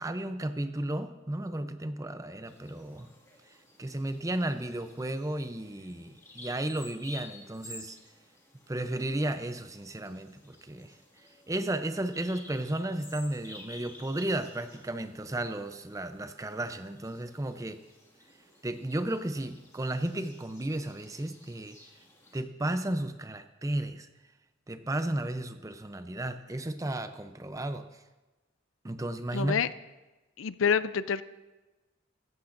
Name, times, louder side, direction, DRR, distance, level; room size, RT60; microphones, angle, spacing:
voice 1, 0.0-3.1 3.5-8.0 8.7-17.8 18.6-21.8 22.3-24.1 24.7-28.0 28.8-29.6, right 1 dB, 15° right, 9 dB, 0.6 m, -34 dB
Bird vocalization bird call bird song, 2.5-22.4, left 2 dB, 15° left, 2.0 m, -53 dB
voice 2, 29.3-29.7 30.4-31.2, left 6 dB, 85° left, 15 dB, 0.5 m, -27 dB
15.5 x 14.5 x 2.6 m, 1.1 s
head